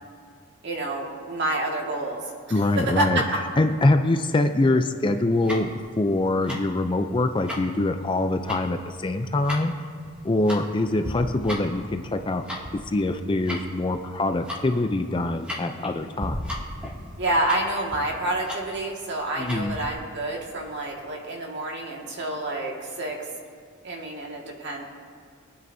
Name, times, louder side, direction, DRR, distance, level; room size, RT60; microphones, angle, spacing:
voice 1, 0.6-2.3 2.8-3.2 17.2-23.3 23.8-24.8, right 1 dB, 55° right, -1 dB, 1.9 m, -28 dB
voice 2, 2.5-3.2 3.6-5.7 6.0-9.7 10.2-12.4 12.9-16.4 19.4-19.8, left 2 dB, 25° left, 7 dB, 0.5 m, -24 dB
Tick-tock, 5.3-19.9, left 1 dB, 5° right, 2.3 m, -37 dB
23.0 x 9.3 x 2.7 m, 2.2 s
head